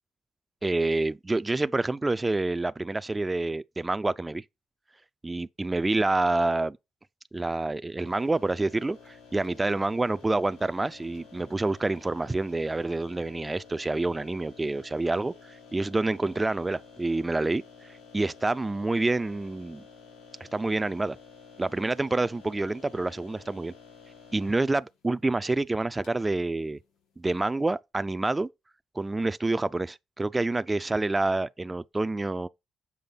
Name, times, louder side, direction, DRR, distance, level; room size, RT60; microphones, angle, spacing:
voice 1, 0.6-4.4 5.2-6.8 7.3-19.8 20.5-21.2 21.6-23.7 24.3-26.8 27.2-28.5 29.0-32.5, right 2 dB, 20° right, 0.3 m, -28 dB
sound 1, 8.0-27.7, left 5 dB, 80° left, 4.4 m, -52 dB
7.0 x 4.9 x 3.9 m
cardioid pair, 90°, 0 cm